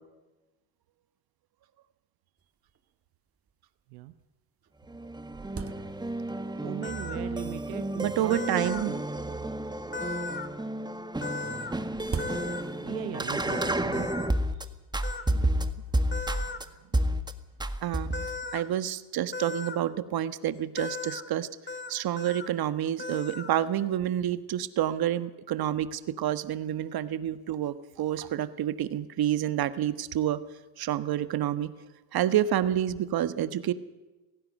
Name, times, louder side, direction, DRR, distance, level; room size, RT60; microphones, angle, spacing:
sound 1, 2.4-2.5 2.7-2.8 3.5-3.6 4.2-4.3 4.7-6.4 7.2-7.6 8.5-9.9 11.1-13.0, right 5 dB, 30° right, 1.8 m, -41 dB
sound 2, 4.9-14.6 14.9-16.6 16.9-17.3 17.6-18.4, right 1 dB, 10° right, 1.7 m, -31 dB
voice 1, 6.6-8.7 12.8-14.1 14.5-14.6 15.3-15.8, right 15 dB, 75° right, 12 dB, 0.9 m, -40 dB
sound 3, 6.8-7.2 8.3-8.8 9.9-10.5 11.2-11.7 12.2-12.6 13.5-14.3 15.0-15.2 16.1-16.6 18.1-18.6 19.3-19.8 20.8-21.2 21.7-21.9 22.2-22.5 23.0-23.5, left 3 dB, 25° left, 2.5 m, -37 dB
voice 2, 8.0-9.0 17.8-18.2 18.5-21.5 21.9-30.4 30.8-31.7 32.1-33.7, right 11 dB, 50° right, 13 dB, 1.4 m, -28 dB
18.5 x 16.0 x 9.3 m, 1.1 s
hypercardioid pair, 65°, 47 cm